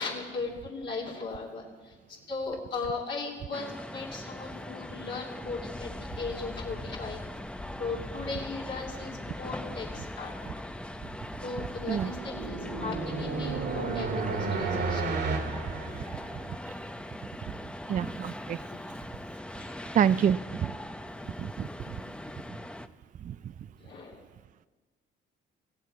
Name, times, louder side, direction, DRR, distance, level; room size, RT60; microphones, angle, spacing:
voice 1, 0.0-1.9 2.3-7.2 7.8-10.3 11.4-15.1 19.6-20.0 23.8-24.2, left 4 dB, 65° left, -5 dB, 2.8 m, -37 dB
sound 1, 3.5-22.9, left 1 dB, 5° left, 0.6 m, -41 dB
sound 2, 5.4-16.0, left 2 dB, 20° left, 2.0 m, -46 dB
sound 3, 11.4-16.6, right 4 dB, 55° right, 2.2 m, -32 dB
voice 2, 17.9-18.6 19.9-20.7 21.2-22.0 23.2-23.4, right 8 dB, 40° right, 15 dB, 0.4 m, -28 dB
20.0 x 15.5 x 4.7 m, 1.3 s
cardioid pair, 90°, 20 cm